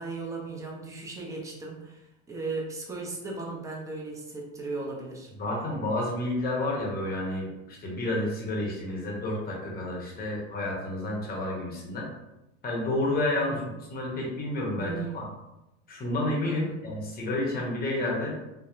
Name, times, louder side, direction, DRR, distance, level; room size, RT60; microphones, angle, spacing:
voice 1, 0.0-5.3 13.4-13.8 14.8-15.4 16.4-17.0, right 3 dB, 10° right, -2 dB, 0.4 m, -37 dB
voice 2, 5.4-12.1 12.6-13.6 13.9-15.2 15.9-18.4, left 1 dB, 25° left, -2 dB, 0.8 m, -30 dB
2.7 x 2.1 x 2.4 m, 0.95 s
supercardioid pair, 115°, 35 cm